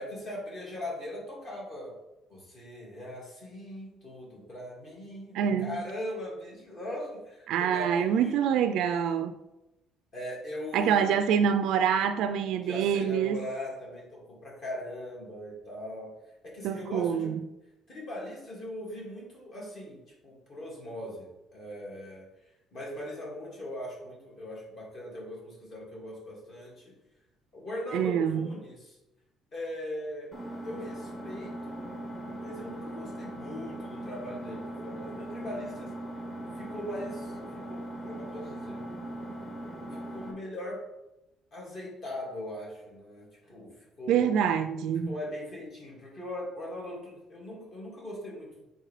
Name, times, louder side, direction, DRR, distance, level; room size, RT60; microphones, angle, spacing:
voice 1, 0.0-1.9 2.3-8.4 10.1-11.2 12.7-16.1 16.4-17.4 17.9-22.3 22.7-26.9 27.5-29.0 29.5-30.3 30.6-31.8 32.4-35.9 36.5-38.8 39.9-40.8 41.5-44.3 45.1-48.6, left 1 dB, 40° left, 2.1 m, -40 dB
voice 2, 5.3-5.8 7.5-9.4 10.7-13.4 16.6-17.4 27.9-28.5 44.1-45.1, right 8 dB, 70° right, 0.4 m, -26 dB
Engine, 30.3-40.3, right 1 dB, 15° left, 1.2 m, -39 dB
7.7 x 4.2 x 3.2 m
cardioid pair, 170°, 0 cm